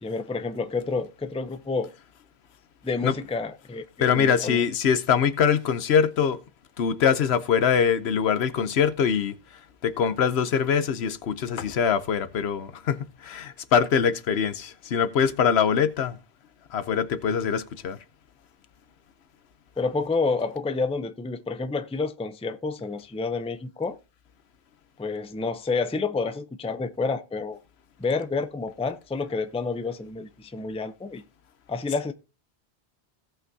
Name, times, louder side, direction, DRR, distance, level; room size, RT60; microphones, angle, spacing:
voice 1, 0.0-1.9 2.8-3.9 4.1-4.6 19.8-24.0 25.0-27.6 28.0-31.2 31.7-32.1, left 4 dB, 10° left, 0.4 m, -29 dB
voice 2, 4.0-6.4 6.8-9.4 9.8-16.2 16.7-18.0, left 7 dB, 85° left, 1.0 m, -23 dB
17.5 x 5.8 x 2.7 m
omnidirectional pair, 1.1 m